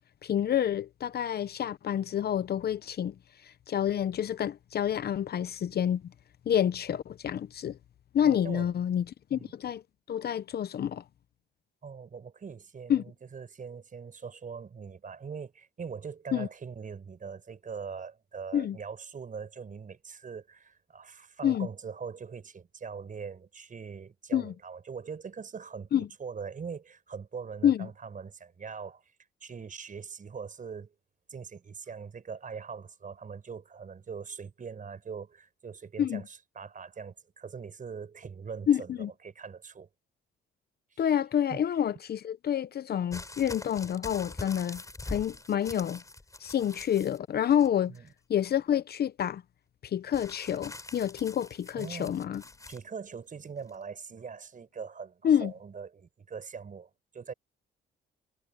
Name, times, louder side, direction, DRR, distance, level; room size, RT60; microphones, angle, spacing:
voice 1, 0.2-3.1 3.4-6.0 6.5-7.8 8.1-9.1 9.3-9.8 10.1-11.0 12.9-13.0 16.3-16.5 18.5-18.8 21.4-21.7 24.3-24.5 25.9-26.1 27.6-27.9 36.0-36.2 38.7-39.1 41.0-44.8 45.1-46.0 46.4-48.0 48.3-49.4 49.8-52.4 55.2-55.5, left 9 dB, 55° left, 0.7 m, -28 dB
voice 2, 8.2-8.7 9.3-9.5 11.8-29.0 29.4-30.9 31.3-39.9 40.9-41.0 41.5-41.6 47.9-48.1 51.8-52.2 52.7-57.3, right 6 dB, 40° right, 5.7 m, -42 dB
sound 1, 43.1-47.2 47.5-48.1 50.1-52.8 53.7-53.8, left 2 dB, 15° left, 4.3 m, -44 dB
cardioid pair, 90°, 20 cm